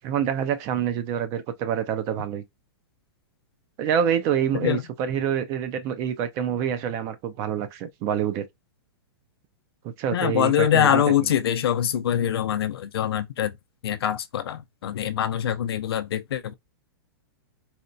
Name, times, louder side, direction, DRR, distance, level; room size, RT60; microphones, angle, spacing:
voice 1, 0.0-2.4 3.8-8.4 9.8-11.1, right 9 dB, 25° right, 0.3 m, -26 dB
voice 2, 10.1-13.5 13.8-16.5, left 10 dB, 90° left, 0.5 m, -24 dB
4.1 x 2.1 x 2.6 m
hypercardioid pair, 160°, 12 cm